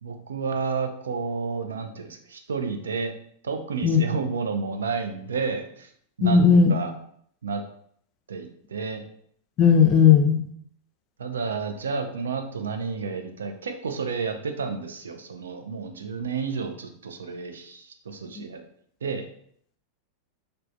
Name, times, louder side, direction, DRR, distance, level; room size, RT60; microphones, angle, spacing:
voice 1, 0.0-3.1 3.4-5.9 6.2-6.9 7.4-7.6 8.3-9.0 11.2-18.6 19.0-19.2, right 5 dB, 70° right, 6 dB, 0.3 m, -31 dB
voice 2, 6.2-6.7 9.6-10.4 18.4-18.5, left 6 dB, 35° left, 5 dB, 0.4 m, -16 dB
3.1 x 2.0 x 2.6 m, 0.64 s
figure-of-eight pair, 90°, 0 cm